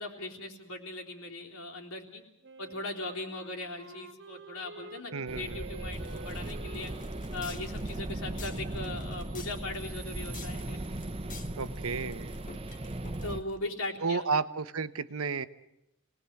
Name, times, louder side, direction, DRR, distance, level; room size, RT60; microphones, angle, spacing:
voice 1, 0.0-2.2 2.6-6.9 7.3-10.8 13.2-14.3, left 2 dB, 70° left, 0 dB, 3.7 m, -39 dB
Wind instrument woodwind instrument, 2.4-9.2, right 2 dB, 55° right, 1.6 m, -50 dB
voice 2, 5.1-5.6 11.6-12.4 14.0-15.5, right 5 dB, 70° right, 13 dB, 0.9 m, -32 dB
sound 1, 5.3-13.4, right 1 dB, 25° right, 1.0 m, -38 dB
sound 2, 5.9-13.6, left 6 dB, 35° left, 1.4 m, -51 dB
28.0 x 19.5 x 8.3 m, 0.85 s
head